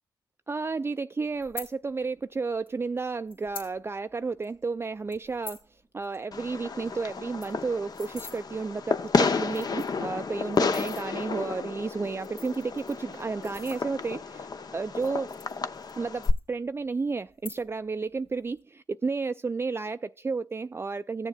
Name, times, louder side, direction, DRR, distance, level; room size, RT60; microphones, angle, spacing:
voice 1, 0.5-5.6 5.9-14.5 14.7-15.3 16.0-21.3, right 4 dB, 30° right, 0.3 m, -32 dB
sound 1, 1.4-1.7 2.7-2.8 3.3-3.7 4.1-4.2 4.4-4.6 5.1-5.7 6.0-6.2 6.5-6.6 6.9-7.0 7.2-8.4 9.0-9.1 9.4-10.0 10.5-11.0 12.0-14.2 14.9-16.0 16.2-16.9 17.3-17.9 18.2-18.6, left 4 dB, 85° left, 2.9 m, -44 dB
Fireworks, 6.3-16.3, left 4 dB, 50° left, 0.6 m, -31 dB
16.5 x 7.1 x 2.3 m
cardioid pair, 55°, 9 cm